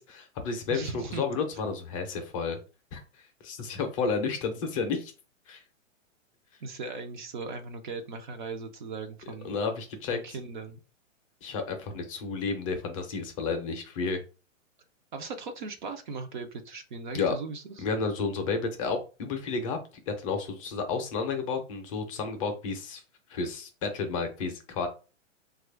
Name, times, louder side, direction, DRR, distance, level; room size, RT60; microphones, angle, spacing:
voice 1, 0.0-2.6 2.9-3.0 3.4-5.1 5.5-5.6 9.4-10.2 11.4-14.2 17.1-17.3 17.8-19.8 20.1-23.0 23.3-24.9, left 4 dB, 25° left, 5 dB, 0.5 m, -31 dB
voice 2, 0.7-1.2 6.6-9.5 10.1-10.8 15.1-17.9, right 4 dB, 40° right, 6 dB, 0.4 m, -38 dB
3.0 x 2.3 x 3.3 m, 0.32 s
hypercardioid pair, 145°, 39 cm